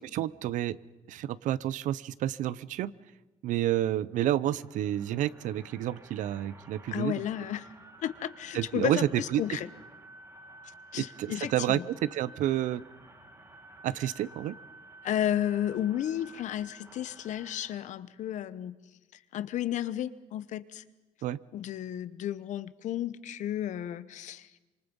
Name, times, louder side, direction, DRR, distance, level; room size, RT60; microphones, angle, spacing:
voice 1, 0.1-0.8 1.1-2.9 3.4-7.1 8.5-9.6 11.0-12.8 13.8-14.5 21.2-21.4, right 12 dB, 80° right, 19 dB, 0.7 m, -30 dB
sound 1, 4.1-17.8, right 1 dB, 25° right, 3.6 m, -53 dB
voice 2, 6.9-7.7 8.0-9.7 10.9-11.8 15.0-18.7 19.3-20.8 21.5-24.5, left 11 dB, 70° left, 15 dB, 1.0 m, -33 dB
26.5 x 24.0 x 5.4 m, 1.1 s
cardioid pair, 120°, 13 cm